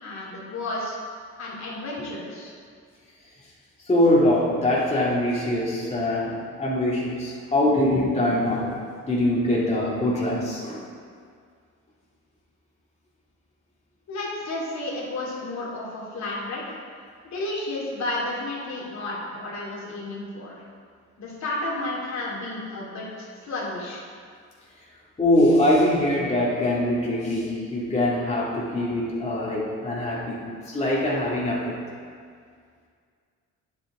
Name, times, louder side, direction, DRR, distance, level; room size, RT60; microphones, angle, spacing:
voice 1, 0.0-1.0 1.4-2.5 14.1-16.8 17.2-20.6 21.2-24.0, left 2 dB, 65° left, -6 dB, 2.5 m, -32 dB
voice 2, 3.9-8.7 9.1-10.9 25.2-31.8, left 1 dB, 20° left, -6 dB, 1.9 m, -23 dB
9.7 x 7.6 x 3.5 m, 2.1 s
cardioid pair, 90°, 30 cm